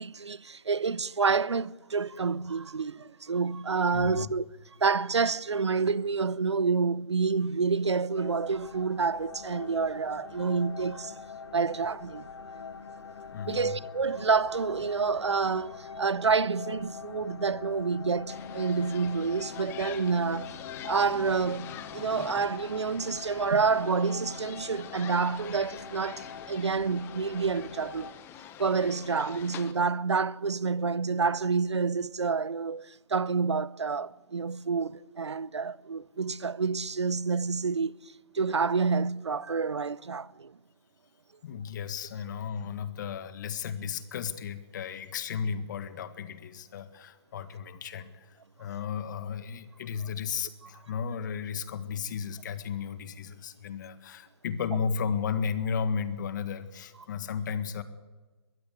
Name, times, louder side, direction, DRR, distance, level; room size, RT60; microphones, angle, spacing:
voice 1, 0.0-4.4 4.8-11.1 11.5-12.3 13.5-20.5 20.8-28.1 28.6-37.9 38.3-40.5, right 5 dB, 80° right, 0.7 m, -28 dB
voice 2, 3.9-4.3 13.3-13.8 41.4-57.8, left 6 dB, 40° left, 1.7 m, -34 dB
sound 1, 8.1-28.1, left 5 dB, 65° left, 1.5 m, -44 dB
sound 2, 18.3-29.7, left 10 dB, 15° left, 1.1 m, -46 dB
22.5 x 15.5 x 8.2 m
figure-of-eight pair, 140°, 14 cm